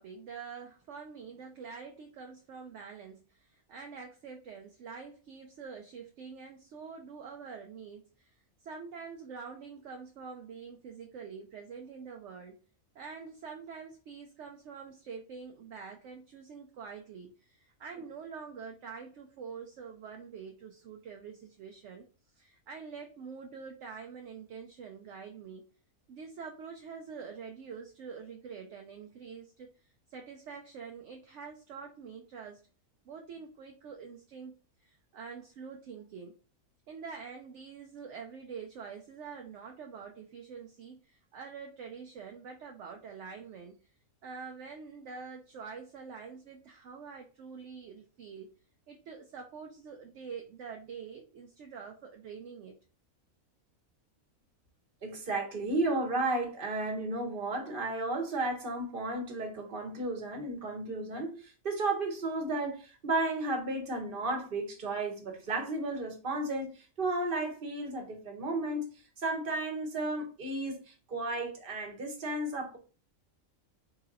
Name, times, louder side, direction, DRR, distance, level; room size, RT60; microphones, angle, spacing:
voice 1, 0.0-8.3 8.6-12.6 12.9-22.1 22.3-25.7 26.1-29.7 30.1-32.6 33.0-34.5 34.8-36.3 36.9-43.8 44.2-48.5 48.9-52.8, right 5 dB, 65° right, 0.8 m, -46 dB
voice 2, 55.0-68.9 69.2-72.8, right 2 dB, 40° right, 1.1 m, -33 dB
4.0 x 2.8 x 3.8 m
omnidirectional pair, 1.5 m